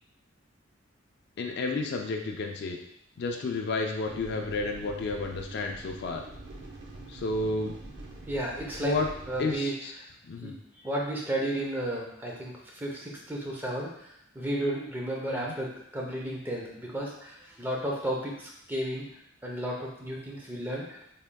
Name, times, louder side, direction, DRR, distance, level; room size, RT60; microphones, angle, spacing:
voice 1, 1.4-2.8 3.2-6.2 7.1-7.8 8.8-9.1 9.4-9.9 10.2-10.5 15.3-15.5, left 3 dB, 55° left, 2 dB, 0.4 m, -31 dB
sound 1, 4.0-9.6, right 2 dB, 55° right, 0.6 m, -45 dB
voice 2, 8.3-9.0 9.3-9.8 10.4-19.1 19.4-21.0, right 1 dB, 10° right, -3 dB, 0.6 m, -33 dB
3.5 x 3.5 x 2.2 m, 0.75 s
head